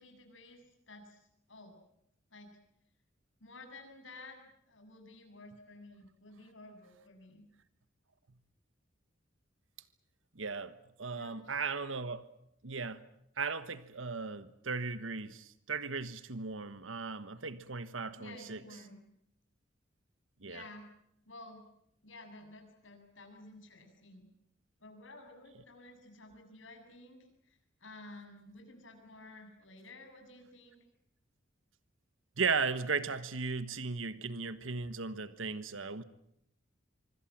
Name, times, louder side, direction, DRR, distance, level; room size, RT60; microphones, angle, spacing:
voice 1, 0.0-1.8 2.3-2.6 3.4-7.5 11.1-11.4 18.2-19.0 20.4-20.9 21.2-21.6 22.0-24.3 24.8-30.8, left 2 dB, 80° left, 7.5 m, -53 dB
voice 2, 10.3-12.2 12.6-13.0 13.4-18.6 20.4-20.6 32.4-36.0, right 4 dB, 90° right, 1.3 m, -36 dB
25.5 x 25.0 x 7.6 m
head